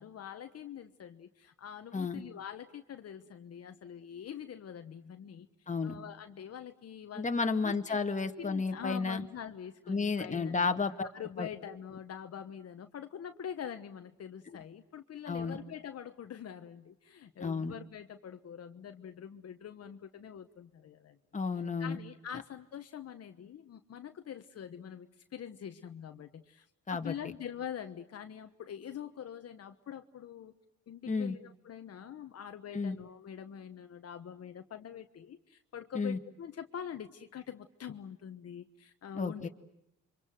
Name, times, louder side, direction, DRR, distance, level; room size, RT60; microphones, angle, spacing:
voice 1, 0.0-5.5 5.8-7.3 7.6-8.0 8.4-10.7 11.1-21.2 21.8-30.5 30.9-39.5, left 9 dB, 55° left, 7 dB, 1.3 m, -44 dB
voice 2, 5.7-6.0 7.2-9.2 9.9-11.1 11.4-11.5 15.3-15.6 17.4-17.7 21.3-22.0 26.9-27.1 31.1-31.4 32.7-33.0 35.9-36.2 39.1-39.5, left 4 dB, 25° left, 6 dB, 2.0 m, -32 dB
29.0 x 24.5 x 7.8 m, 0.81 s
cardioid pair, 90°, 30 cm